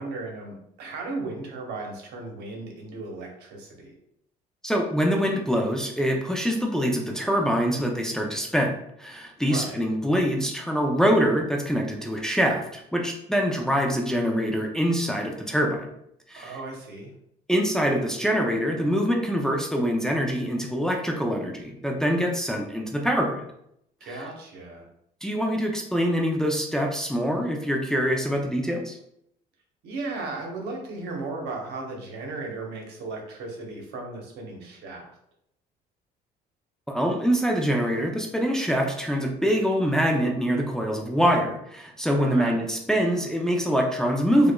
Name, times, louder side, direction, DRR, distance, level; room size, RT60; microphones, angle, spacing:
voice 1, 0.0-3.9 9.4-9.8 16.4-17.1 24.0-24.9 29.8-35.1 42.2-42.5, right 3 dB, 75° right, 1 dB, 0.9 m, -36 dB
voice 2, 4.6-8.7 9.0-15.9 16.3-16.6 17.5-23.4 24.1-24.2 25.2-29.0 36.9-44.5, equal, 5° left, 0 dB, 0.5 m, -24 dB
4.7 x 2.4 x 2.2 m, 0.75 s
cardioid pair, 110°, 17 cm